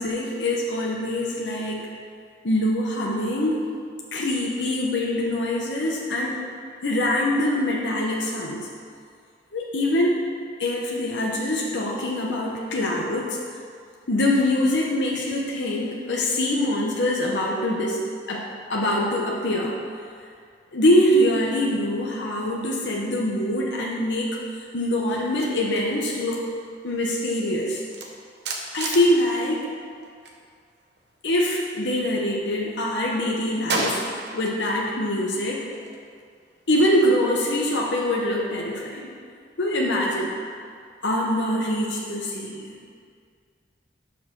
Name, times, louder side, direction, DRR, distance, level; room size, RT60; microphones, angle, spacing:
voice 1, 0.0-1.9 2.4-3.6 4.1-6.5 6.8-8.7 9.5-10.1 10.6-13.4 14.1-18.0 18.3-19.7 20.7-24.3 24.7-26.4 26.8-27.8 28.7-29.6 31.2-34.0 34.3-35.7 36.7-39.1 39.6-40.3 41.0-42.7, left 1 dB, 75° left, -3 dB, 0.9 m, -24 dB
sound 1, 25.1-30.4 30.7-32.3 32.7-34.8 35.1-37.9, right 2 dB, 65° right, 0.9 m, -35 dB
6.6 x 5.6 x 6.0 m, 2.2 s
head